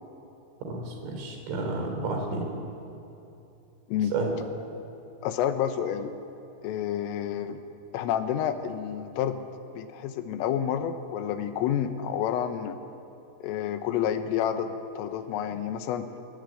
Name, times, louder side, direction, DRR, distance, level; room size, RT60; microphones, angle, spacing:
voice 1, 0.6-2.5 4.1-4.4, right 3 dB, 70° right, 3 dB, 6.3 m, -31 dB
voice 2, 5.2-6.2 6.6-7.6 7.9-9.5 9.8-12.8 13.4-16.1, left 9 dB, 85° left, 8 dB, 3.7 m, -29 dB
23.5 x 21.5 x 9.2 m, 2.8 s
omnidirectional pair, 5.9 m